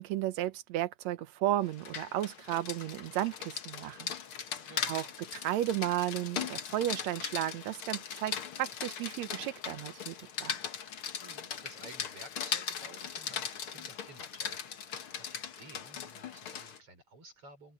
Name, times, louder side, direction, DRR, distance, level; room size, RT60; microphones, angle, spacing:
voice 1, 0.0-4.1 4.9-5.1 5.3-10.2 10.4-10.6, right 13 dB, 70° right, 2.1 m, -33 dB
Rain, 1.7-16.8, left 8 dB, 50° left, 2.0 m, -39 dB
voice 2, 4.7-5.0 11.2-17.7, right 2 dB, 50° right, 6.0 m, -53 dB
open air
omnidirectional pair, 3.5 m